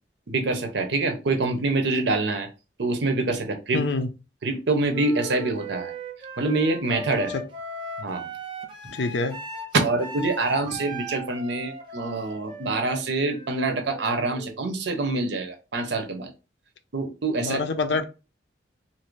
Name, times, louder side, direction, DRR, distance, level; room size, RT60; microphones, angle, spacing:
voice 1, 0.3-2.5 2.8-3.8 4.4-5.9 6.4-7.3 8.0-8.3 8.8-8.9 9.7-16.3 16.9-17.6, right 3 dB, 65° right, 0.7 m, -25 dB
voice 2, 3.7-4.1 7.3-7.4 8.9-9.4 17.4-18.0, left 3 dB, 65° left, 0.5 m, -26 dB
Wind instrument woodwind instrument, 4.9-14.7, right 1 dB, 25° right, 0.5 m, -38 dB
2.7 x 2.5 x 3.1 m
head